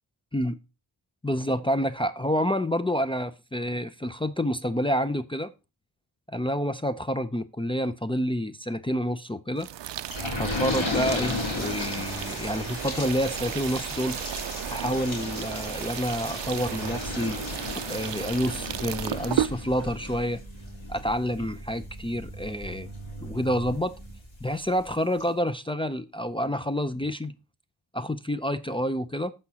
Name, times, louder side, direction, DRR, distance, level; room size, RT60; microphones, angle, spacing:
voice 1, 1.2-5.5 6.3-9.7 10.4-14.2 14.7-17.4 17.9-20.4 20.9-22.9 23.2-23.9 24.4-27.3 27.9-29.3, equal, 10° left, 0.5 m, -28 dB
sound 1, 9.6-19.5, right 12 dB, 65° right, 0.5 m, -34 dB
sound 2, 10.1-24.4 24.8-24.9 25.2-25.3, left 2 dB, 70° left, 3.3 m, -35 dB
sound 3, 10.3-24.2, right 2 dB, 30° left, 5.5 m, -47 dB
14.5 x 5.0 x 2.8 m
cardioid pair, 45°, 47 cm